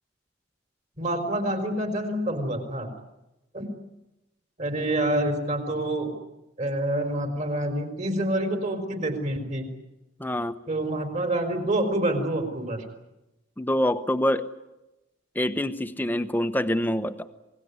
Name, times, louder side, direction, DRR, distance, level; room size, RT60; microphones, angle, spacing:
voice 1, 1.0-2.9 3.5-3.7 4.6-6.1 6.6-9.6 10.7-12.8, right 1 dB, 40° right, 7 dB, 4.2 m, -27 dB
voice 2, 10.2-10.5 13.6-14.5 15.3-17.3, left 1 dB, 10° left, 11 dB, 1.0 m, -25 dB
27.0 x 18.5 x 9.7 m, 0.97 s
head